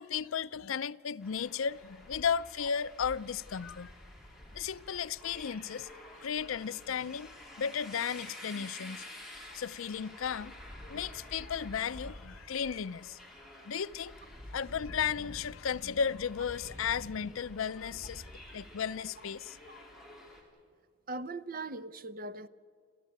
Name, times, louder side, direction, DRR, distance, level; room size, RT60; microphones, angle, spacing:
voice 1, 0.0-3.9 4.5-5.9 6.2-9.1 9.5-10.5 10.9-13.2 13.7-14.1 14.5-18.3 18.5-19.8, left 7 dB, 80° left, 0.5 m, -35 dB
sound 1, 1.2-20.4, left 1 dB, ahead, 3.6 m, -49 dB
voice 2, 21.1-22.5, right 2 dB, 45° right, 0.7 m, -40 dB
28.0 x 14.0 x 9.4 m
head